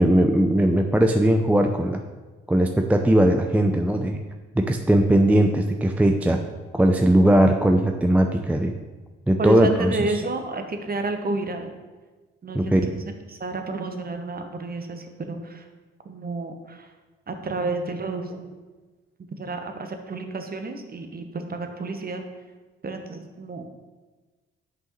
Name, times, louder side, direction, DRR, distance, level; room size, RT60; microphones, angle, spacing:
voice 1, 0.0-2.0 2.5-4.2 4.6-6.4 6.7-8.7 9.3-10.0 12.5-12.8, right 1 dB, 5° right, 5 dB, 0.4 m, -19 dB
voice 2, 9.4-11.7 12.4-13.0 13.3-15.7 16.0-16.9 17.3-18.5 19.4-22.2 22.8-23.7, right 3 dB, 30° right, 6 dB, 1.0 m, -30 dB
8.4 x 5.4 x 3.1 m, 1.3 s
figure-of-eight pair, 40°, 30 cm